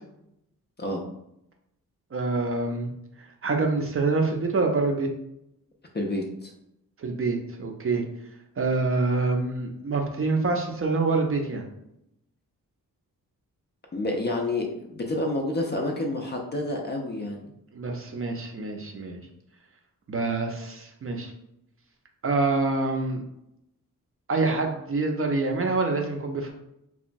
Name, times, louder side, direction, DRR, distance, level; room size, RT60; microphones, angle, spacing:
voice 1, 2.1-2.9 3.4-5.1 7.0-8.0 8.6-11.6 17.7-19.2 20.1-21.3 22.2-23.2 24.3-26.5, right 3 dB, 40° right, 2 dB, 0.5 m, -26 dB
voice 2, 5.9-6.5 13.9-17.5, left 2 dB, 30° left, 1 dB, 0.4 m, -29 dB
2.9 x 2.2 x 2.5 m, 0.80 s
wide cardioid pair, 95°, 35 cm